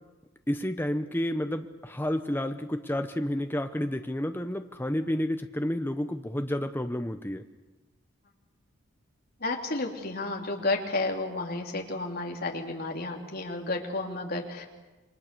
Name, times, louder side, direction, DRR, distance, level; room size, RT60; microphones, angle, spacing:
voice 1, 0.5-7.4, left 1 dB, 10° left, 7 dB, 0.8 m, -30 dB
voice 2, 9.4-14.7, left 2 dB, 45° left, 1 dB, 3.1 m, -31 dB
28.0 x 24.5 x 6.9 m, 1.2 s
head